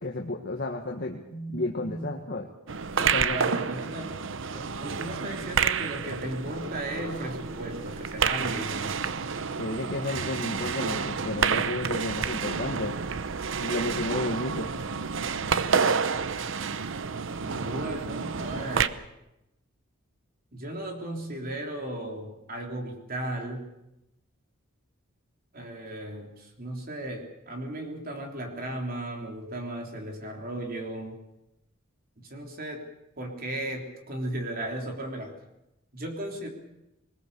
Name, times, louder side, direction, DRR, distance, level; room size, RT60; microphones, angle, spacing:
voice 1, 0.0-1.2 1.5-2.5 3.0-3.4 9.6-12.9 13.6-14.7, left 2 dB, 50° left, 1 dB, 1.6 m, -32 dB
voice 2, 1.3-2.1 3.2-4.1 4.5-9.1 17.4-19.0 20.5-23.7 25.5-31.2 32.2-32.9 33.2-35.3 35.9-36.5, right 1 dB, 45° right, 2 dB, 3.6 m, -36 dB
sound 1, 2.7-18.9, right 6 dB, 65° right, 0.8 m, -29 dB
22.0 x 20.0 x 6.9 m, 0.89 s
head